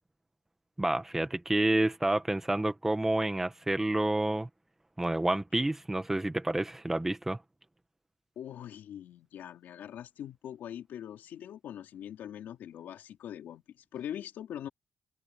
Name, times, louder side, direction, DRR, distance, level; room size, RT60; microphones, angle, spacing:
voice 1, 0.8-4.5 5.0-7.4, right 1 dB, 10° right, 1.9 m, -29 dB
voice 2, 8.4-14.7, left 10 dB, 90° left, 3.0 m, -42 dB
cardioid pair, 125°, 3 cm